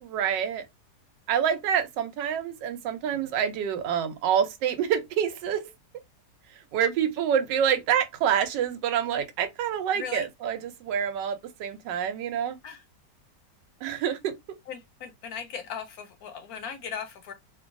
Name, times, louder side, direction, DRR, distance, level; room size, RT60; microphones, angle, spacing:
voice 1, 0.0-0.6 1.3-5.6 6.7-12.6 13.8-14.4, right 8 dB, 90° right, 1.2 m, -27 dB
voice 2, 9.9-10.3 12.6-12.8 14.0-14.1 14.7-17.3, left 7 dB, 70° left, 0.9 m, -38 dB
2.9 x 2.2 x 2.4 m
omnidirectional pair, 1.9 m